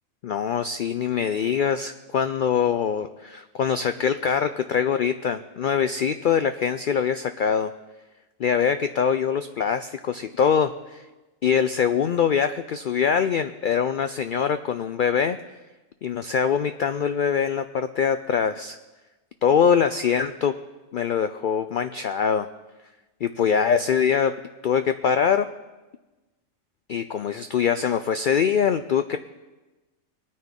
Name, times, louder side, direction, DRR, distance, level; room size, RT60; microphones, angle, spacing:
voice 1, 0.2-7.7 8.4-11.0 11.4-15.4 16.0-18.8 19.4-20.6 20.9-22.5 23.2-24.4 24.6-25.5 26.9-29.2, left 7 dB, 75° left, 10 dB, 0.4 m, -23 dB
21.5 x 9.4 x 3.7 m, 1.1 s
omnidirectional pair, 1.4 m